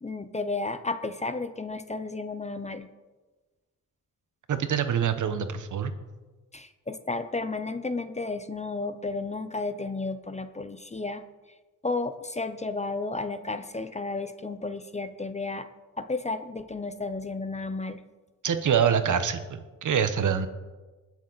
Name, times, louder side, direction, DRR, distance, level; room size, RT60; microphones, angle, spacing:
voice 1, 0.0-2.9 6.5-11.2 11.8-15.7 16.0-18.0, left 3 dB, 20° left, 10 dB, 0.6 m, -32 dB
voice 2, 4.5-5.9 18.4-20.5, right 7 dB, 60° right, 9 dB, 1.1 m, -25 dB
20.5 x 7.2 x 4.0 m, 1.2 s
cardioid pair, 110°, 34 cm